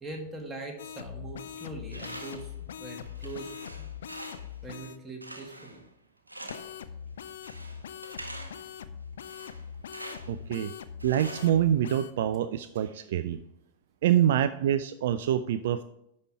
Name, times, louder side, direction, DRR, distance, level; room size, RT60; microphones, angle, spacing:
voice 1, 0.0-2.5 2.8-3.9 4.6-5.8, right 2 dB, 10° right, 0 dB, 1.8 m, -41 dB
sound 1, 0.8-5.0 6.5-12.1, left 8 dB, 65° left, 0.5 m, -42 dB
Tools, 1.9-2.6 3.0-4.6 5.2-5.9 6.3-6.8 7.4-8.7 9.2-10.4 11.0-12.1, right 1 dB, 85° right, 0.9 m, -45 dB
voice 2, 10.3-10.7 11.0-13.4 14.0-15.8, right 10 dB, 55° right, 12 dB, 0.3 m, -26 dB
10.5 x 4.2 x 4.7 m, 0.79 s
figure-of-eight pair, 90°, 0 cm